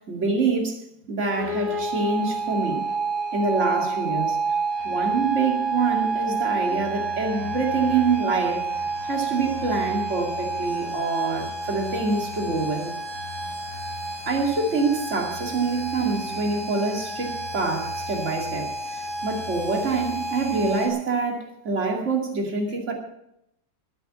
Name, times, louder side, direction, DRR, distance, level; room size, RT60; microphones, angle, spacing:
voice 1, 0.1-0.8 1.1-2.8 3.3-4.4 4.8-8.7 9.1-12.9 14.3-18.7 19.2-22.9, right 4 dB, 40° right, 2 dB, 2.6 m, -25 dB
sound 1, 1.4-20.9, right 3 dB, 60° right, 2.5 m, -29 dB
13.0 x 9.3 x 7.3 m, 0.81 s
omnidirectional pair, 1.9 m